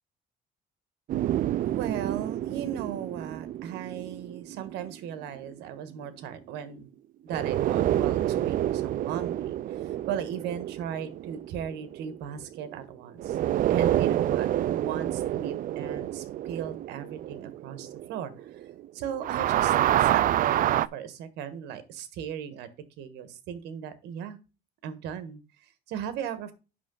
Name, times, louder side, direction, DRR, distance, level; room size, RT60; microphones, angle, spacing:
sound 1, 1.1-5.6 7.3-12.8 13.2-18.9 19.1-20.9, right 12 dB, 55° right, 0.4 m, -28 dB
voice 1, 1.6-6.9 7.2-13.4 13.7-18.7 18.9-22.7 23.0-24.4 24.8-26.5, right 8 dB, 85° right, 12 dB, 1.4 m, -37 dB
8.5 x 6.2 x 3.9 m, 0.31 s
cardioid pair, 110°, 17 cm